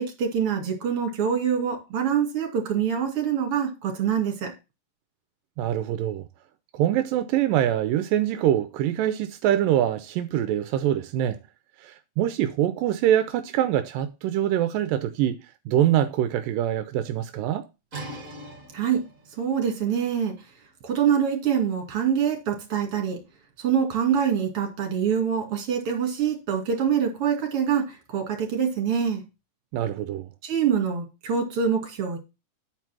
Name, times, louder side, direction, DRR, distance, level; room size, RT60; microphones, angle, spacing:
voice 1, 0.0-4.5 18.7-19.0 19.4-20.3 20.8-23.2 23.6-29.2 30.4-32.2, right 7 dB, 45° right, 3.0 m, -25 dB
voice 2, 5.6-6.2 6.7-11.4 11.8-17.7 29.7-30.3, right 11 dB, 85° right, 2.3 m, -24 dB
sound 1, 17.9-23.5, right 2 dB, 25° right, 2.7 m, -45 dB
9.9 x 4.7 x 5.9 m
omnidirectional pair, 3.9 m